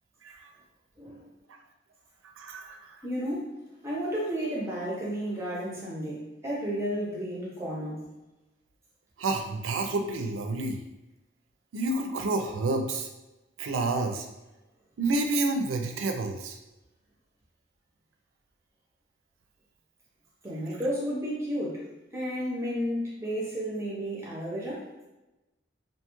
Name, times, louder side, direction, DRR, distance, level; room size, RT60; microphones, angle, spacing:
voice 1, 1.0-1.3 3.0-3.5 3.8-8.1 20.4-21.8 22.1-24.9, equal, 15° right, -5 dB, 0.5 m, -32 dB
voice 2, 2.4-3.1 9.2-10.8 11.7-13.1 13.6-14.3 15.0-16.6, right 2 dB, 85° right, 5 dB, 0.4 m, -29 dB
2.7 x 2.2 x 2.9 m, 1.0 s
head